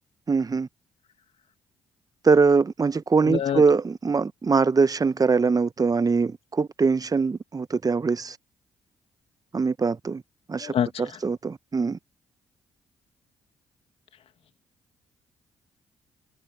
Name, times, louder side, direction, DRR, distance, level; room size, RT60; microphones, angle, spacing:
voice 1, 0.3-0.7 2.2-8.4 9.5-10.2 10.5-10.7 11.2-12.0, right 4 dB, 30° right, 1.2 m, -22 dB
voice 2, 3.2-3.6 10.6-11.2, left 9 dB, 55° left, 2.5 m, -27 dB
hypercardioid pair, 45°, 12 cm